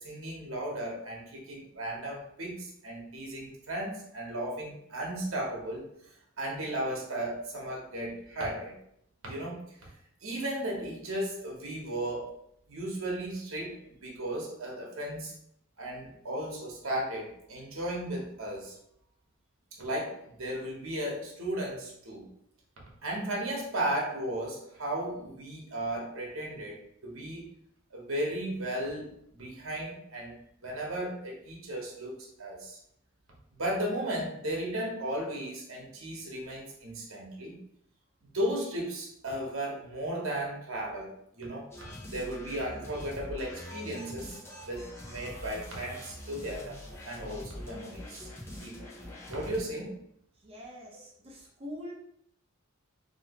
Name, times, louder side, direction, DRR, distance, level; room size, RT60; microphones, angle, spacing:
voice 1, 0.0-5.9 6.4-8.7 9.2-9.9 10.2-12.3 12.7-15.3 15.8-18.8 19.8-22.2 23.0-27.5 27.9-30.3 30.6-32.8 33.6-37.5 38.3-41.7 42.1-44.3 44.6-46.8 47.0-48.9 49.3-50.0, right 1 dB, 70° right, -1 dB, 1.1 m, -35 dB
sound 1, 41.7-49.6, left 1 dB, 10° left, 0.7 m, -44 dB
voice 2, 50.3-51.9, equal, 30° right, -3 dB, 0.7 m, -44 dB
3.0 x 2.8 x 2.9 m, 0.73 s
head